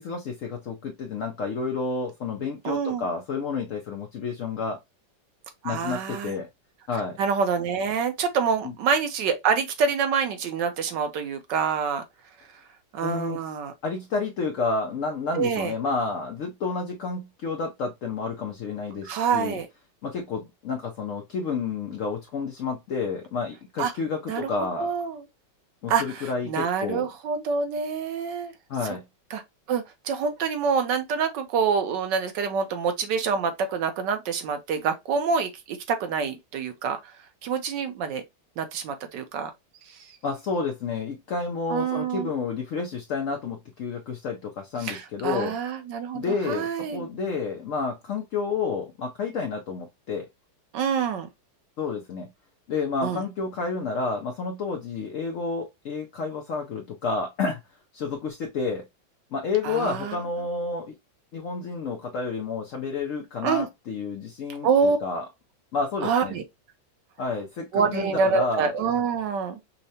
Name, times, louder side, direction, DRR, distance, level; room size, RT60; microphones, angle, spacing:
voice 1, 0.0-4.8 5.6-6.5 6.9-7.2 8.6-8.7 13.0-13.4 13.8-19.6 20.0-24.9 25.8-27.1 28.7-29.0 40.2-45.6 46.1-50.3 51.8-52.3 52.7-57.6 57.9-58.9 59.3-60.9 61.3-65.2 65.7-66.4 67.2-68.7, left 4 dB, 80° left, 0.7 m, -30 dB
voice 2, 2.6-3.1 5.6-6.4 7.2-12.0 12.9-13.7 15.3-15.7 19.0-19.7 23.8-23.9 24.3-25.3 25.9-28.5 28.8-29.0 29.3-29.4 29.7-37.1 37.4-38.2 38.6-39.5 39.8-40.1 41.7-42.3 44.8-47.1 50.7-51.3 53.0-53.2 59.6-60.2 63.4-63.7 64.6-65.0 66.0-66.4 67.7-69.6, right 6 dB, 70° right, 1.3 m, -26 dB
5.5 x 2.1 x 2.7 m
omnidirectional pair, 2.1 m